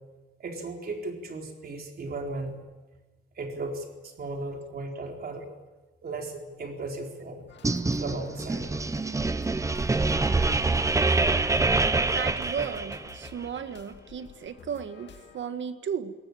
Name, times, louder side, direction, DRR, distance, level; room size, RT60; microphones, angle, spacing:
voice 1, 0.4-2.6 3.4-5.5 6.0-7.5 8.0-8.6, right 2 dB, 50° right, 2 dB, 4.3 m, -36 dB
sound 1, 7.5-15.4, left 6 dB, 65° left, 2.2 m, -50 dB
sound 2, 7.6-13.3, right 3 dB, 15° right, 0.8 m, -25 dB
voice 2, 12.1-16.1, right 7 dB, 75° right, 9 dB, 1.7 m, -35 dB
22.0 x 18.5 x 8.8 m, 1.2 s
wide cardioid pair, 175°, 20 cm